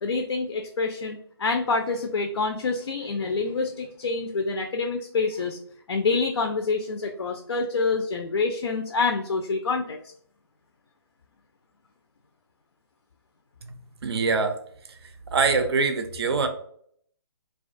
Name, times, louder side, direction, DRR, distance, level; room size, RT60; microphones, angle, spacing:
voice 1, 0.0-5.6 5.9-10.0, left 4 dB, 80° left, 5 dB, 0.4 m, -27 dB
voice 2, 14.0-14.6 14.9-16.5, right 4 dB, 70° right, 7 dB, 0.4 m, -24 dB
2.4 x 2.2 x 2.5 m, 0.64 s
figure-of-eight pair, 150°, 14 cm